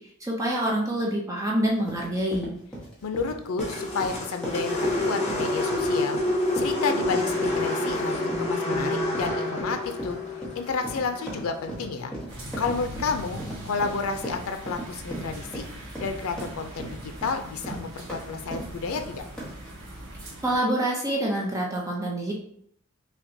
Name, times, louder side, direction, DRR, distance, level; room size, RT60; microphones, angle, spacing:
voice 1, 0.2-2.5 20.4-22.3, right 1 dB, 15° right, -2 dB, 0.6 m, -26 dB
sound 1, 1.6-19.7, right 1 dB, 5° left, 0.9 m, -39 dB
voice 2, 3.0-6.2 6.5-10.2 10.6-12.1 12.6-15.7 16.0-19.2, left 4 dB, 90° left, 7 dB, 0.4 m, -31 dB
sound 2, 3.6-11.9, left 1 dB, 30° left, 1.0 m, -28 dB
sound 3, 12.3-20.6, right 1 dB, 85° right, 1.4 m, -41 dB
5.6 x 2.2 x 2.6 m, 0.66 s
head